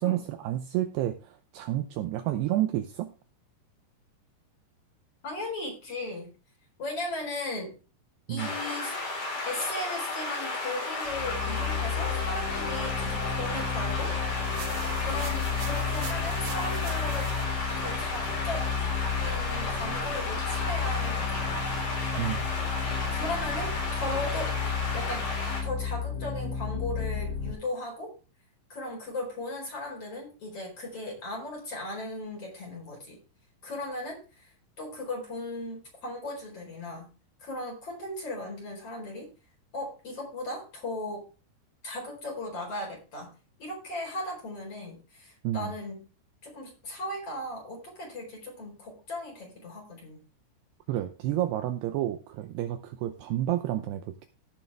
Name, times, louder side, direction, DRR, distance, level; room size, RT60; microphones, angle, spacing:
voice 1, 0.0-3.1 8.3-8.5 22.2-22.5 45.4-45.7 50.9-54.3, right 13 dB, 85° right, 9 dB, 2.3 m, -30 dB
voice 2, 5.2-6.3 6.8-7.7 8.3-9.0 9.4-14.1 15.0-17.3 17.8-18.7 19.2-21.7 23.1-23.7 24.0-24.6 24.9-25.2 25.6-28.1 28.7-33.2 33.6-37.1 37.4-39.3 39.7-41.3 41.8-43.3 43.6-46.1 46.4-50.2, left 1 dB, 30° left, -1 dB, 4.8 m, -37 dB
sound 1, 8.4-25.6, left 2 dB, 55° left, 6.8 m, -33 dB
sound 2, 11.1-27.5, left 6 dB, 90° left, 5.8 m, -32 dB
sound 3, 14.4-17.4, right 8 dB, 65° right, 3.2 m, -44 dB
16.5 x 6.5 x 3.5 m, 0.34 s
omnidirectional pair, 5.5 m